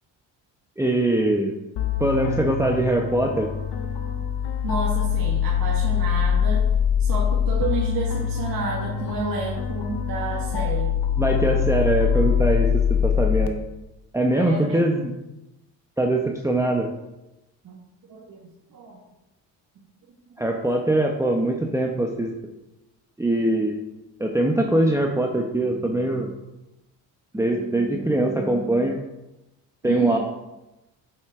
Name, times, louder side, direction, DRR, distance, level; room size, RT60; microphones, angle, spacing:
voice 1, 0.8-1.5 2.0-3.5 11.2-13.6 14.1-15.1 16.0-16.9 20.4-22.3 23.2-23.8 24.2-26.3 27.3-29.0 29.8-30.2, right 1 dB, 5° right, 1 dB, 1.1 m, -22 dB
sound 1, 1.8-13.5, left 8 dB, 70° left, 1.1 m, -23 dB
voice 2, 4.6-6.6 7.0-10.9 14.3-14.8 17.6-17.8 18.1-19.0 29.8-30.2, right 4 dB, 50° right, -3 dB, 1.9 m, -30 dB
8.5 x 7.9 x 3.8 m, 0.97 s
supercardioid pair, 75°, 43 cm